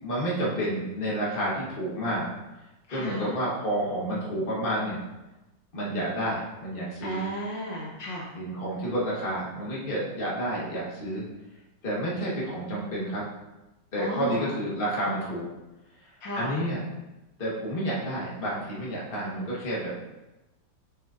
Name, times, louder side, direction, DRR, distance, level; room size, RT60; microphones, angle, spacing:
voice 1, 0.0-2.3 2.9-5.0 5.7-7.2 8.3-11.2 11.8-13.3 13.9-15.5 16.3-16.8 17.4-20.0, right 1 dB, 30° left, -6 dB, 1.9 m, -30 dB
voice 2, 2.9-3.3 7.0-8.3 14.0-14.5 16.2-16.6, equal, 65° left, -4 dB, 1.9 m, -34 dB
7.3 x 6.2 x 2.8 m, 1.0 s
omnidirectional pair, 2.2 m